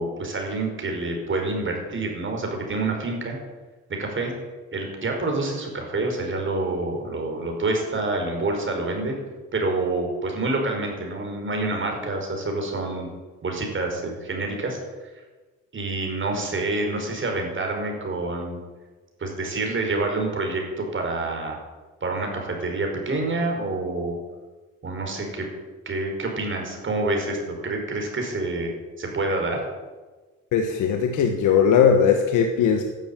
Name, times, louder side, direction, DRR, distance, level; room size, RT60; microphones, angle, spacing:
voice 1, 0.0-3.4 3.9-4.3 4.7-9.1 9.5-13.1 13.4-15.1 15.7-18.6 19.2-21.6 22.0-24.2 24.8-25.5 25.9-28.7 29.0-29.6, right 2 dB, 40° right, 2 dB, 5.2 m, -27 dB
voice 2, 30.5-32.8, left 7 dB, 90° left, 5 dB, 1.5 m, -19 dB
12.5 x 11.0 x 9.1 m, 1.3 s
cardioid pair, 90°, 30 cm